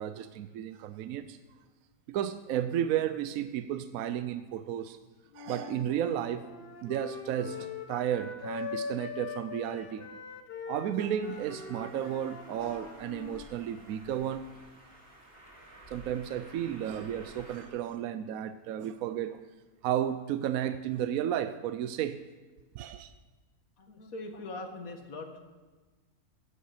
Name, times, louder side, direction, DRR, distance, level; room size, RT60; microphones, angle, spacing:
voice 1, 0.0-1.4 2.1-5.0 5.3-6.5 6.8-10.1 10.7-14.5 15.9-19.4 19.8-22.2 22.7-23.1, right 10 dB, 75° right, 1.0 m, -33 dB
Wind instrument woodwind instrument, 5.3-13.5, left 5 dB, 45° left, 1.2 m, -42 dB
Train, 11.2-17.7, right 1 dB, 40° right, 3.0 m, -53 dB
voice 2, 23.8-25.4, left 2 dB, 75° left, 1.9 m, -41 dB
15.0 x 10.5 x 5.7 m
omnidirectional pair, 1.5 m